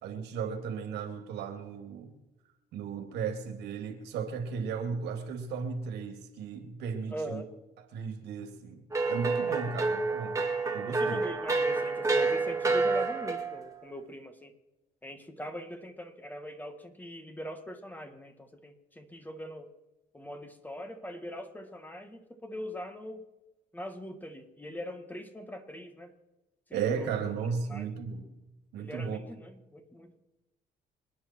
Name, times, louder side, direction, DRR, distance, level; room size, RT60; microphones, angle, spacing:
voice 1, 0.0-2.1 2.7-7.4 7.9-8.8 9.1-10.4 10.7-11.2 26.7-28.3 28.7-29.2, right 6 dB, 80° right, 6 dB, 3.0 m, -35 dB
voice 2, 7.1-7.5 10.9-14.5 15.0-19.7 20.1-23.2 23.7-26.1 26.7-27.1 27.7-27.9 28.8-30.2, equal, 10° left, 7 dB, 1.9 m, -41 dB
sound 1, 8.9-13.6, right 3 dB, 20° right, 2.3 m, -29 dB
27.0 x 9.7 x 4.7 m, 1.0 s
cardioid pair, 110°, 17 cm